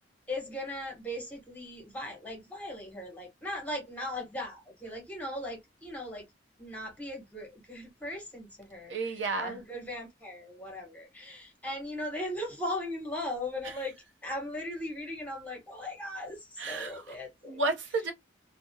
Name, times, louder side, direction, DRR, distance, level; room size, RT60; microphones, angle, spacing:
voice 1, 0.3-6.2 6.6-14.0 14.2-17.6, left 1 dB, 10° left, 1.0 m, -38 dB
voice 2, 8.9-9.6 13.6-13.7 16.6-17.2 17.5-18.1, right 3 dB, 85° right, 0.6 m, -32 dB
2.3 x 2.1 x 2.6 m
head